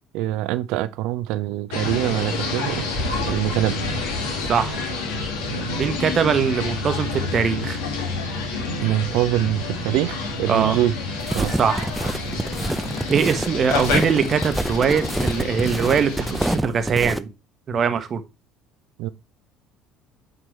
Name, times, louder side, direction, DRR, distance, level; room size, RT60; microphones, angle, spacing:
voice 1, 0.1-2.8 3.2-3.8 8.8-10.9 11.3-11.6 12.3-12.4 19.0-19.1, right 14 dB, 60° right, 0.6 m, -24 dB
sound 1, 1.7-16.6, left 3 dB, 70° left, 2.4 m, -28 dB
voice 2, 4.5-4.8 5.8-7.8 10.5-10.8 11.5-11.9 13.1-17.3 17.7-18.2, right 6 dB, 40° right, 1.2 m, -22 dB
sound 2, 11.2-17.2, right 1 dB, 5° right, 0.6 m, -26 dB
9.1 x 6.1 x 3.3 m
figure-of-eight pair, 60°, 0 cm